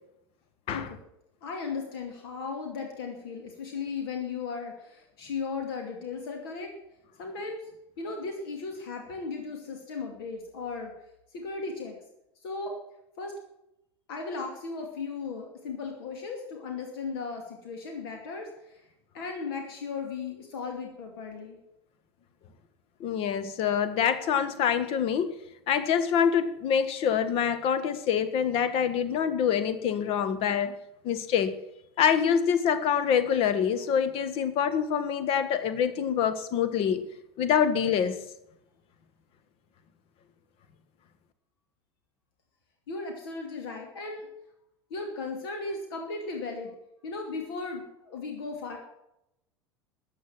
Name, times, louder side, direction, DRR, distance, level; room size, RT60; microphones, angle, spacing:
voice 1, 1.4-6.7 7.2-7.7 8.0-10.9 11.3-12.0 12.4-12.8 13.2-13.3 14.1-18.8 19.1-21.6 42.9-44.3 44.9-46.7 47.0-48.8, left 4 dB, 60° left, 2.6 m, -36 dB
voice 2, 23.0-25.4 25.7-30.7 31.0-31.6 32.0-37.0 37.4-38.2, left 8 dB, 45° left, 1.4 m, -25 dB
14.0 x 9.0 x 7.4 m
figure-of-eight pair, 75°, 14 cm